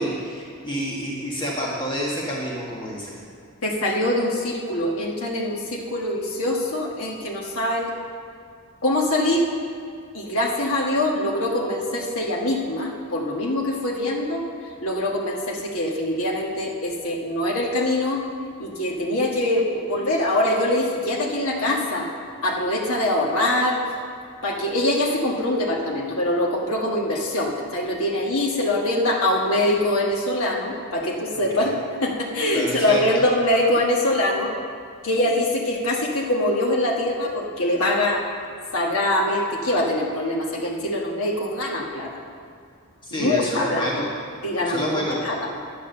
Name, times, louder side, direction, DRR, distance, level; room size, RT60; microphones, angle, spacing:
voice 1, 0.0-3.2 31.5-31.7 32.5-33.0 43.0-44.1 44.6-45.2, equal, 25° left, -4 dB, 1.6 m, -28 dB
voice 2, 3.6-7.9 8.8-9.4 10.1-14.4 14.8-18.2 18.6-22.1 22.4-23.8 24.4-31.7 32.0-34.5 35.0-38.2 38.7-42.1 43.1-43.9 44.4-45.5, left 1 dB, 80° left, -2 dB, 1.5 m, -23 dB
11.0 x 8.5 x 6.7 m, 2.3 s
head